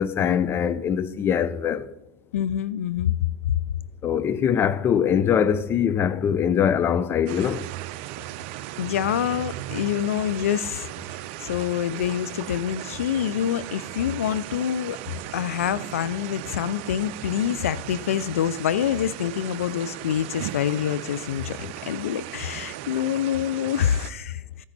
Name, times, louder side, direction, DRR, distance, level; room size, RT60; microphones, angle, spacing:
voice 1, 0.0-1.9 4.0-7.6, left 8 dB, 30° left, 0.7 m, -22 dB
voice 2, 2.3-3.2 8.8-15.0 15.3-21.6 21.8-24.6, left 10 dB, 80° left, 0.4 m, -26 dB
sound 1, 7.3-24.1, right 15 dB, 60° right, 0.5 m, -37 dB
14.5 x 9.9 x 4.1 m
hypercardioid pair, 100°, 7 cm